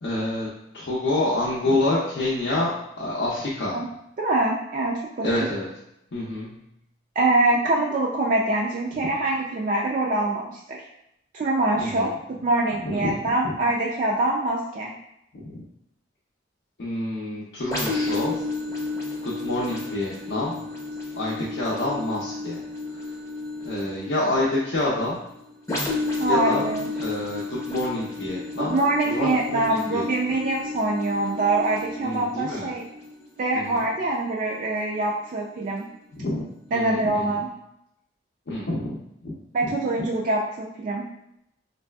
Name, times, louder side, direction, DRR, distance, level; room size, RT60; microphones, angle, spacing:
voice 1, 0.0-3.9 5.2-5.7 6.1-6.6 9.0-9.1 11.7-12.1 12.8-13.6 15.3-15.7 16.8-18.5 19.2-20.7 21.2-23.2 23.6-25.3 26.2-26.6 27.0-30.4 32.0-32.7 33.5-33.8 36.1-37.4 38.5-39.8, left 2 dB, 65° left, -6 dB, 0.5 m, -28 dB
voice 2, 4.2-5.3 7.2-10.8 11.3-14.9 26.2-26.9 28.6-32.8 33.4-35.9 36.7-37.5 39.5-41.0, right 2 dB, 45° right, -2 dB, 0.3 m, -24 dB
sound 1, 17.7-35.2 35.8-35.9, left 3 dB, 15° left, 0.6 m, -33 dB
3.1 x 2.6 x 2.2 m, 0.81 s
head